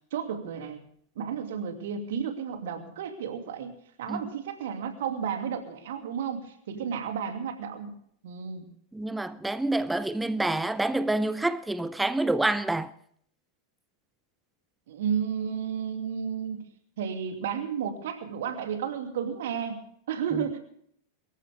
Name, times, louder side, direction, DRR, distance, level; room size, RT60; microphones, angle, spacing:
voice 1, 0.1-0.8 1.2-7.9 8.2-8.7 14.9-16.6 17.0-20.6, right 7 dB, 55° right, 2.6 m, -32 dB
voice 2, 8.9-12.9, right 2 dB, 5° right, 0.6 m, -27 dB
23.0 x 14.0 x 3.6 m
figure-of-eight pair, 90°, 0 cm